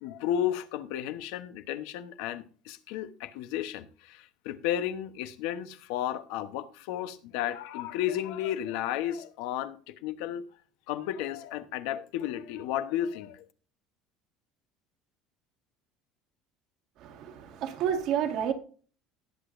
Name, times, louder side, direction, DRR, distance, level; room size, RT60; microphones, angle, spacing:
voice 1, 0.0-10.4 10.9-13.5, left 11 dB, 80° left, 0.9 m, -33 dB
voice 2, 17.0-18.5, right 9 dB, 55° right, 1.7 m, -30 dB
18.0 x 8.0 x 2.6 m
cardioid pair, 145°, 0 cm